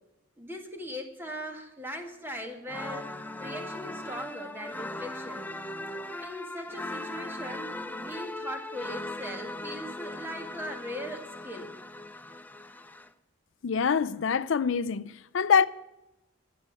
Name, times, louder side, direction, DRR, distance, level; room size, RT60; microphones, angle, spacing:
voice 1, 0.4-3.1 3.4-5.5 6.2-11.7, equal, 10° right, 1.9 m, -40 dB
sound 1, 2.7-13.1, left 2 dB, 10° left, 0.6 m, -39 dB
voice 2, 13.6-15.7, left 6 dB, 70° left, 0.5 m, -25 dB
14.5 x 7.0 x 9.7 m
head